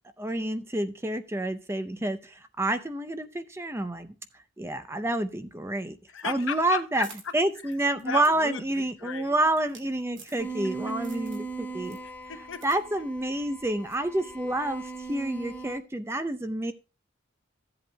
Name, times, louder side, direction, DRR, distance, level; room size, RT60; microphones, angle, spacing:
voice 1, 0.2-4.1 4.6-6.0 6.2-7.1 7.3-12.0 12.6-14.8 15.1-16.7, right 1 dB, 10° right, 10 dB, 0.5 m, -28 dB
voice 2, 6.1-7.1 7.6-7.7 8.0-9.4 12.0-12.6, left 6 dB, 75° left, 9 dB, 0.9 m, -36 dB
sound 1, 6.4-10.7 11.0-11.5 11.8-12.8 13.1-13.2 13.9-14.1, right 5 dB, 65° right, 2.4 m, -51 dB
sound 2, 10.4-15.8, right 4 dB, 10° left, 1.5 m, -39 dB
15.0 x 7.8 x 2.2 m, 0.31 s
head